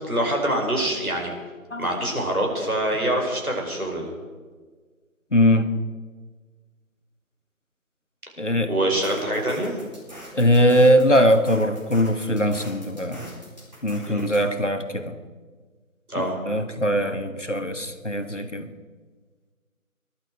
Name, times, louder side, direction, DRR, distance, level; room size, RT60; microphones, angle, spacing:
voice 1, 0.0-1.3 1.8-4.1 8.7-9.8 14.1-14.3 16.1-16.4, right 1 dB, 80° right, 0 dB, 5.1 m, -25 dB
voice 2, 5.3-5.7 8.4-8.7 10.3-13.3 13.8-15.2 16.2-18.7, equal, 55° left, 9 dB, 1.4 m, -21 dB
sound 1, 8.9-14.4, equal, 30° right, 4.0 m, -43 dB
21.0 x 11.5 x 4.8 m, 1.5 s
figure-of-eight pair, 175°, 43 cm